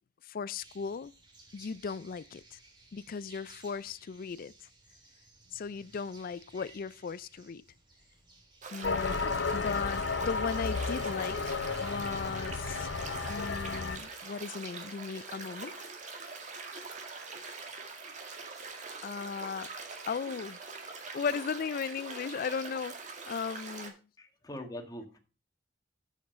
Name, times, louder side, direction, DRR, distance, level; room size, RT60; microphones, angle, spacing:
voice 1, 0.2-1.1 1.5-2.6 2.9-4.5 5.5-7.7 8.7-9.2 9.5-12.9 13.3-15.8 19.0-19.7 20.1-20.6 21.1-24.1, left 5 dB, 50° left, 0.4 m, -37 dB
sound 1, 0.6-8.7, right 2 dB, 25° right, 2.2 m, -58 dB
sound 2, 8.6-23.9, right 4 dB, 40° right, 2.0 m, -43 dB
sound 3, 8.8-14.0, left 4 dB, 65° left, 0.7 m, -33 dB
voice 2, 24.2-25.2, left 1 dB, 20° left, 1.7 m, -42 dB
8.5 x 7.1 x 5.0 m
head